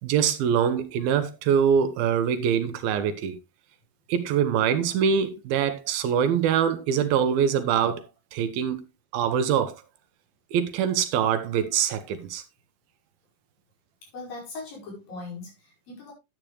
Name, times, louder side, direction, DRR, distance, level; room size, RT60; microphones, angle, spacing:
voice 1, 0.0-3.3 4.1-8.8 9.1-9.8 10.5-12.4, right 8 dB, 90° right, 3.0 m, -24 dB
voice 2, 14.0-16.1, left 3 dB, 70° left, 7.1 m, -40 dB
11.5 x 9.1 x 3.2 m
omnidirectional pair, 4.2 m